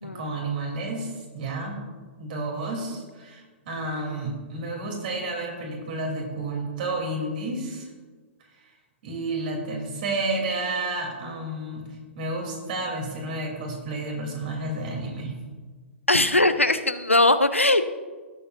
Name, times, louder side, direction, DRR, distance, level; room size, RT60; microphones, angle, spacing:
voice 1, 0.0-1.8 2.2-7.9 9.0-11.9 12.1-15.3, right 2 dB, 45° right, 0 dB, 3.2 m, -31 dB
voice 2, 16.1-17.8, left 2 dB, 90° left, 11 dB, 0.6 m, -20 dB
17.0 x 7.8 x 2.6 m, 1.4 s
figure-of-eight pair, 110°, 7 cm